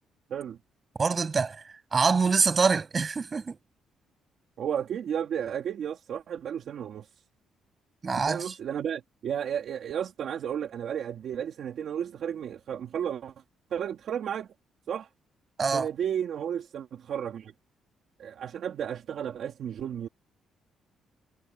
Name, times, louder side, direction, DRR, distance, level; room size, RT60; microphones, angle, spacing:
voice 1, 1.0-1.6 1.9-3.6 8.0-8.5 15.6-15.9, right 5 dB, 25° right, 7.6 m, -25 dB
voice 2, 4.6-7.1 8.3-13.3 13.7-14.5 14.9-15.1 15.7-17.5 18.2-20.1, right 9 dB, 50° right, 2.6 m, -33 dB
cardioid pair, 170°, 0 cm